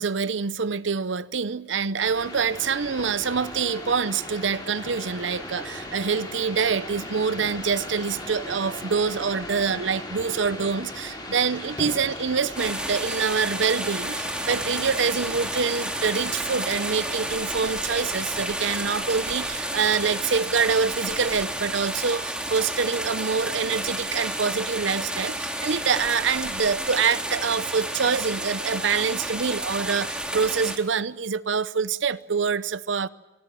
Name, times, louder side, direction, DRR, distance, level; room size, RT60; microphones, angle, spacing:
voice 1, 0.0-33.1, right 5 dB, 80° right, 0.7 m, -26 dB
sound 1, 2.0-19.7, left 1 dB, 25° left, 6.6 m, -38 dB
sound 2, 12.6-30.8, right 1 dB, 5° right, 2.7 m, -31 dB
27.5 x 21.0 x 7.7 m
head